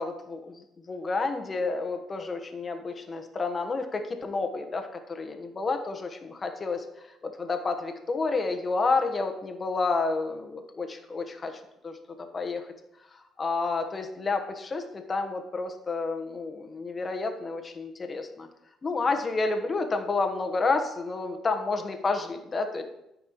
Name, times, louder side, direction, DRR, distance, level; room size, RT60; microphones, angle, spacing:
voice 1, 0.0-6.8 7.2-12.0 12.3-12.7 13.4-18.5 18.8-22.8, left 3 dB, 35° left, 6 dB, 1.1 m, -30 dB
13.5 x 5.3 x 3.1 m, 0.86 s
cardioid pair, 80°, 0 cm